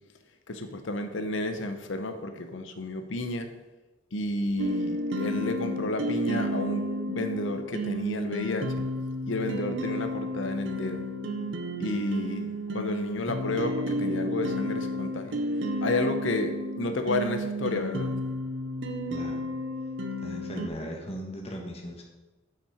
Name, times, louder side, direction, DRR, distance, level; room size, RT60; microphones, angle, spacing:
voice 1, 0.5-3.5 4.1-6.8 7.1-8.8 9.3-11.0 11.8-15.4 15.8-18.1, left 2 dB, 70° left, 7 dB, 0.8 m, -31 dB
sound 1, 4.6-20.7, equal, 65° right, 0.7 m, -32 dB
voice 2, 19.1-19.5 20.2-22.0, equal, 30° left, 0 dB, 1.4 m, -38 dB
7.3 x 5.9 x 5.0 m, 1.1 s
head